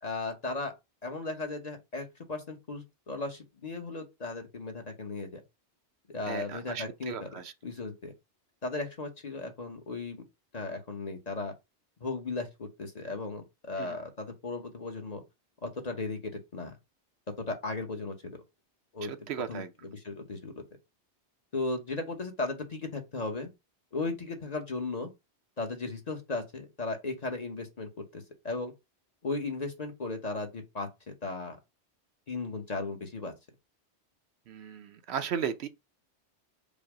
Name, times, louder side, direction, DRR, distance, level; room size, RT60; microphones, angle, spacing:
voice 1, 0.0-0.7 1.0-5.4 6.1-8.1 8.6-10.2 10.5-11.5 12.0-15.2 15.6-16.7 17.4-18.4 18.9-19.1 19.5-20.6 21.5-23.5 23.9-25.1 25.6-28.7 29.2-31.6 32.3-33.3, left 3 dB, 40° left, 0.9 m, -36 dB
voice 2, 6.3-7.5 13.8-14.0 19.1-19.7 34.5-35.7, right 8 dB, 70° right, 0.8 m, -36 dB
5.2 x 2.0 x 4.8 m
omnidirectional pair, 1.2 m